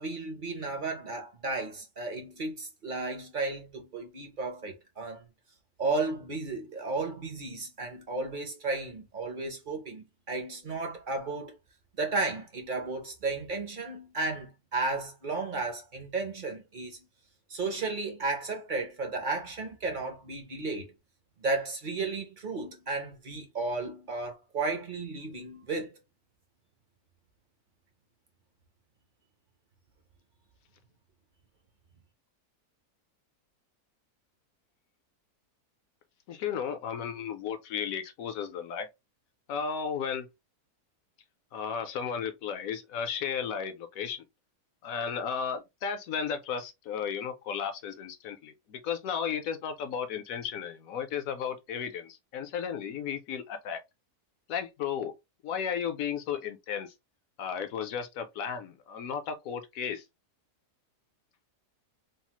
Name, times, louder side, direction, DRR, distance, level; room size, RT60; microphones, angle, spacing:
voice 1, 0.0-5.2 5.8-11.5 12.0-17.0 17.5-20.9 21.4-25.9, right 3 dB, 50° right, 0.6 m, -34 dB
voice 2, 36.3-38.9 39.5-40.3 41.5-44.2 44.8-53.8 54.5-55.1 55.4-56.9 57.4-60.0, left 7 dB, 70° left, 1.0 m, -34 dB
3.2 x 2.0 x 2.9 m
omnidirectional pair, 1.7 m